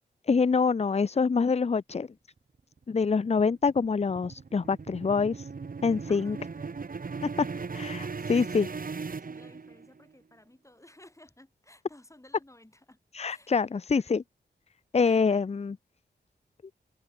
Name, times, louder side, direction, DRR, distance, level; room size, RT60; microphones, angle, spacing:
voice 1, 0.3-2.1 2.9-5.5 5.8-6.4 7.7-8.7 13.1-14.2 14.9-15.7, left 5 dB, 35° left, 0.5 m, -25 dB
sound 1, 2.8-10.0, right 4 dB, 50° right, 1.2 m, -38 dB
voice 2, 6.1-6.8 8.2-14.1 15.1-15.4, left 1 dB, 15° left, 5.8 m, -56 dB
wide cardioid pair, 70°, 19 cm